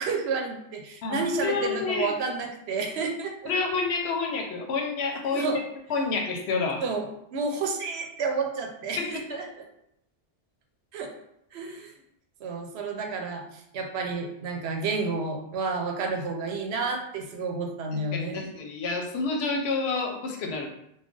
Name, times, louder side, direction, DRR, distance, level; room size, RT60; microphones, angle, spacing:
voice 1, 0.0-3.5 5.3-5.6 6.8-9.5 10.9-11.1 11.5-11.9 12.4-18.5, right 4 dB, 80° right, 3 dB, 0.8 m, -30 dB
voice 2, 1.0-2.1 3.5-5.6 5.9-6.9 9.0-9.2 18.1-20.7, left 4 dB, 80° left, 1 dB, 0.9 m, -29 dB
2.3 x 2.2 x 3.7 m, 0.76 s
omnidirectional pair, 1.1 m